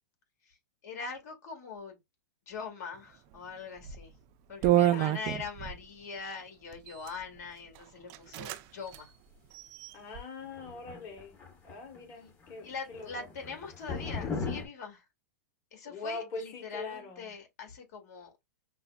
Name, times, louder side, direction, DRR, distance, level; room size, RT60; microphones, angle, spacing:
voice 1, 0.8-2.0 2.5-4.1 4.5-9.1 12.2-12.3 12.6-15.0 15.7-18.3, left 5 dB, 60° left, 1.8 m, -42 dB
sound 1, 3.8-4.0 4.6-5.8 6.7-7.2 7.7-7.8 8.1-8.6 8.9-9.0 9.5-10.2, right 13 dB, 40° right, 0.4 m, -28 dB
voice 2, 9.9-11.4 11.6-13.3 15.8-17.3, left 3 dB, 40° left, 1.3 m, -42 dB
sound 2, 10.4-12.0 12.3-12.6 12.9-14.7, left 4 dB, 25° left, 1.1 m, -38 dB
5.7 x 2.0 x 2.3 m
hypercardioid pair, 125°, 10 cm